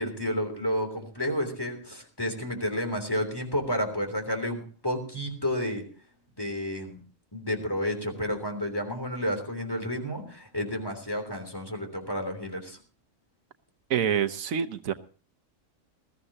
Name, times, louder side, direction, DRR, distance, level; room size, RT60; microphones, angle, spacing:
voice 1, 0.0-5.8 6.4-7.0 7.3-12.8, equal, 15° left, 5 dB, 3.5 m, -31 dB
voice 2, 13.9-14.9, right 8 dB, 85° right, 11 dB, 1.3 m, -26 dB
21.0 x 15.0 x 2.8 m, 0.39 s
omnidirectional pair, 1.4 m